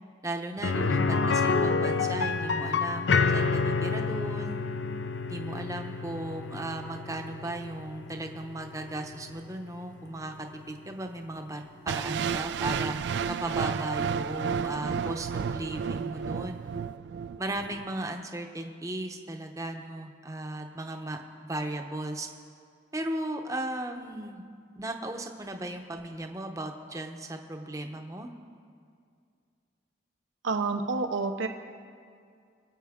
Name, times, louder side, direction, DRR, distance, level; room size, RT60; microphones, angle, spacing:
voice 1, 0.2-4.7 5.3-13.0 13.3-16.6 17.4-21.2 21.5-22.3 22.9-24.4 24.8-28.3, right 1 dB, 15° right, 5 dB, 0.7 m, -36 dB
sound 1, 0.6-10.4 10.7-10.8 13.2-13.3, left 4 dB, 70° left, 0.5 m, -29 dB
sound 2, 11.9-17.9, right 6 dB, 65° right, 0.3 m, -32 dB
voice 2, 30.4-31.5, right 4 dB, 90° right, 6 dB, 0.8 m, -28 dB
25.0 x 8.4 x 3.6 m, 2.2 s
head